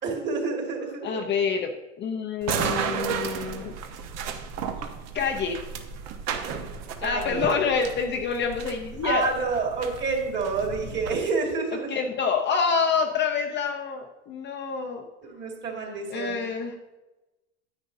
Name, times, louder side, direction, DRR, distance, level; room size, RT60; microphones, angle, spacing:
voice 1, 0.0-1.2 7.0-7.5 9.0-11.9 15.2-16.4, right 4 dB, 30° right, 1 dB, 2.2 m, -28 dB
voice 2, 1.0-3.7 5.1-5.6 7.0-9.3 11.9-15.0 16.1-16.7, left 5 dB, 30° left, 2 dB, 0.7 m, -27 dB
sound 1, 2.4-11.1, right 7 dB, 45° right, 1.0 m, -33 dB
9.9 x 9.6 x 2.7 m, 1.1 s
supercardioid pair, 135°, 37 cm